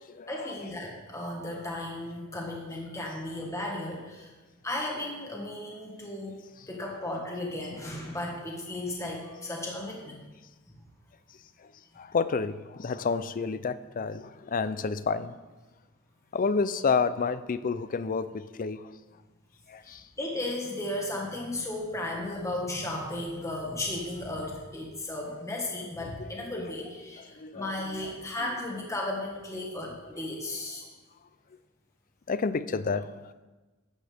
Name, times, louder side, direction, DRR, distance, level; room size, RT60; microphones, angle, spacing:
voice 1, 0.3-4.3 4.6-6.4 6.7-10.2 19.8-30.8, left 1 dB, 15° left, 1.7 m, -35 dB
voice 2, 12.0-15.4 16.3-18.9 19.7-20.0 27.3-28.1 32.3-33.3, left 5 dB, 40° left, 0.5 m, -30 dB
14.0 x 9.5 x 3.5 m
head